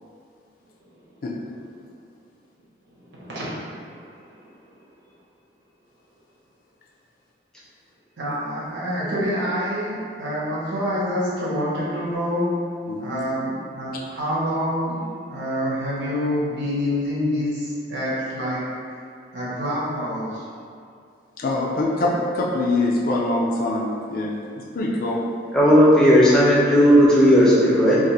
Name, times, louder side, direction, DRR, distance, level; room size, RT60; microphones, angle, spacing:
voice 1, 3.0-4.5 8.2-12.5 13.0-15.0 15.3-18.6 19.3-20.4, equal, 80° right, -8 dB, 1.1 m, -27 dB
voice 2, 12.9-13.2 21.4-24.4 24.7-25.2, left 2 dB, 50° left, -3 dB, 0.3 m, -24 dB
voice 3, 25.5-28.0, equal, 5° left, -7 dB, 0.6 m, -14 dB
2.6 x 2.5 x 4.1 m, 2.3 s
head